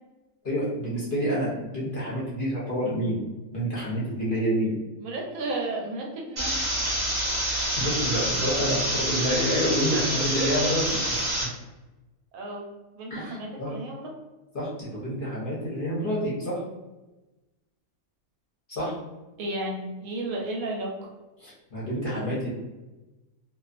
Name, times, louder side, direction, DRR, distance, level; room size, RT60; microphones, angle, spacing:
voice 1, 0.4-3.2 3.5-4.8 7.8-10.8 11.1-11.5 13.1-13.7 14.5-16.6 18.7-18.9 21.4-22.5, equal, 45° left, -8 dB, 0.7 m, -28 dB
voice 2, 5.0-6.9 9.8-10.7 12.3-12.7 12.9-14.1 19.4-21.1, right 2 dB, 75° right, -1 dB, 1.0 m, -33 dB
sound 1, 6.4-11.4, right 1 dB, 35° right, 0.8 m, -27 dB
2.4 x 2.4 x 2.4 m, 1.1 s
omnidirectional pair, 1.5 m